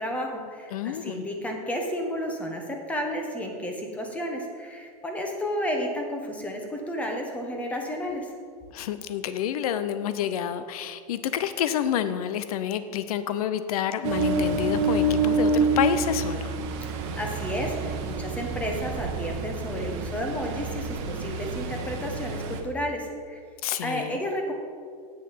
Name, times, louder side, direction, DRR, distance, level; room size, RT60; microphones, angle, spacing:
voice 1, 0.0-8.3 17.2-23.4 23.8-24.5, equal, 5° left, 2 dB, 0.9 m, -32 dB
voice 2, 0.7-1.3 8.7-16.5 23.6-24.2, left 9 dB, 65° left, 12 dB, 0.6 m, -29 dB
Ocean, 14.0-22.6, right 2 dB, 45° right, 1.1 m, -28 dB
8.9 x 6.5 x 5.7 m, 2.1 s
supercardioid pair, 165°, 20 cm